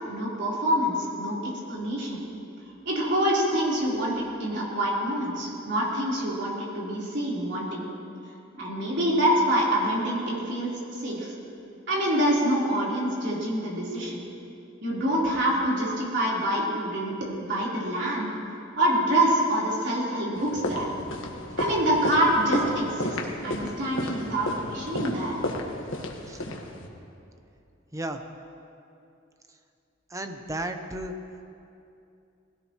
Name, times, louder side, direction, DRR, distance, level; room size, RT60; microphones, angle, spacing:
voice 1, 0.1-2.2 2.9-7.8 8.6-11.3 11.9-14.2 14.8-18.3 18.8-20.9 21.6-23.2 23.4-25.4, right 1 dB, 65° right, -5 dB, 4.0 m, -26 dB
sound 1, 20.3-26.9, left 1 dB, 90° left, 1.6 m, -33 dB
voice 2, 30.1-31.1, right 1 dB, 15° right, 6 dB, 0.8 m, -33 dB
20.0 x 17.0 x 3.1 m, 2.6 s
head